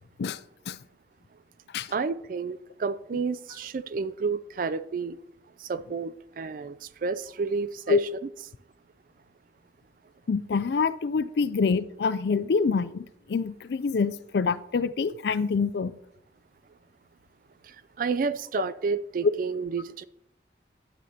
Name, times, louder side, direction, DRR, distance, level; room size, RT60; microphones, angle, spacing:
voice 1, 1.9-5.2 5.6-8.1 17.6-20.1, right 5 dB, 50° right, 15 dB, 0.3 m, -31 dB
voice 2, 10.3-15.9, left 5 dB, 70° left, 15 dB, 0.4 m, -26 dB
10.0 x 9.2 x 2.8 m, 0.78 s
head